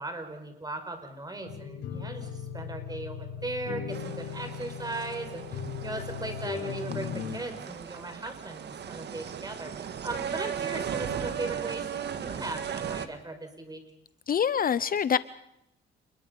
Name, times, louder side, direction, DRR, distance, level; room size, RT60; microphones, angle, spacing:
voice 1, 0.0-2.3 2.5-13.8, right 2 dB, 20° right, 7 dB, 5.6 m, -38 dB
sound 1, 1.5-7.4, left 7 dB, 80° left, 6.1 m, -38 dB
sound 2, 3.9-13.1, right 8 dB, 60° right, 1.8 m, -37 dB
voice 2, 14.3-15.2, left 8 dB, 45° left, 16 dB, 0.8 m, -25 dB
29.0 x 21.5 x 5.5 m, 0.79 s
cardioid pair, 90°, 20 cm